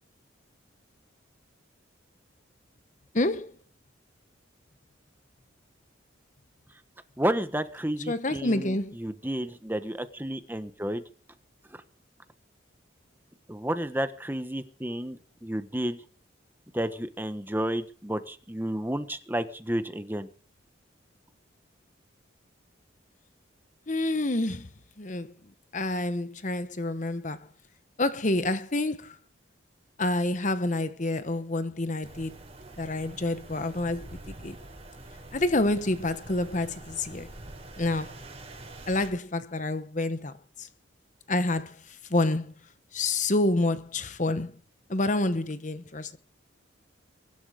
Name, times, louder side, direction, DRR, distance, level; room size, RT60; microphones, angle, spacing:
voice 1, 3.1-3.5 8.1-9.0 23.9-24.7 25.0-25.3 25.7-27.5 28.0-29.2 30.0-32.4 32.8-34.6 35.3-37.3 37.8-38.2 38.9-40.7 41.3-42.5 42.9-44.6 44.9-46.2, left 2 dB, 40° left, 1.0 m, -28 dB
voice 2, 7.2-11.0 13.5-16.0 16.7-20.3, right 1 dB, 10° right, 1.2 m, -31 dB
sound 1, 32.0-39.1, right 2 dB, 30° right, 6.0 m, -45 dB
23.5 x 12.0 x 5.0 m
head